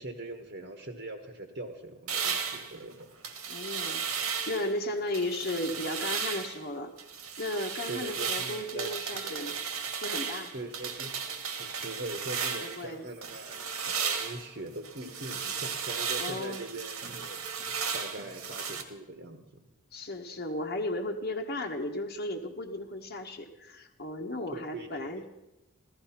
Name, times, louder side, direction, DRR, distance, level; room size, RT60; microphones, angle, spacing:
voice 1, 0.0-3.1 7.9-9.6 10.5-11.2 11.6-19.7 24.5-25.3, right 2 dB, 55° right, 5 dB, 1.4 m, -42 dB
sound 1, 2.1-4.7 5.1-6.6 7.0-12.9 13.2-18.8, right 6 dB, 80° right, 1.9 m, -35 dB
voice 2, 3.5-6.9 7.4-9.5 10.0-10.5 12.8-13.0 16.2-16.6 19.9-25.3, left 1 dB, 45° left, 1 dB, 1.2 m, -35 dB
15.5 x 14.0 x 5.8 m, 0.95 s
head